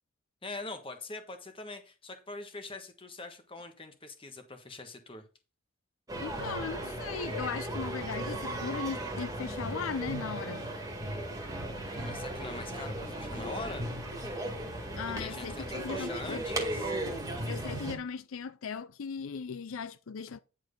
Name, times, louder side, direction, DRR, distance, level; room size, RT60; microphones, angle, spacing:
voice 1, 0.4-5.2 12.0-13.9 15.2-16.9, left 2 dB, 25° left, 1.4 m, -43 dB
voice 2, 6.1-10.7 15.0-16.4 17.5-20.4, left 6 dB, 80° left, 0.5 m, -38 dB
sound 1, 6.1-18.0, right 1 dB, 15° right, 1.9 m, -36 dB
10.0 x 4.6 x 5.2 m
head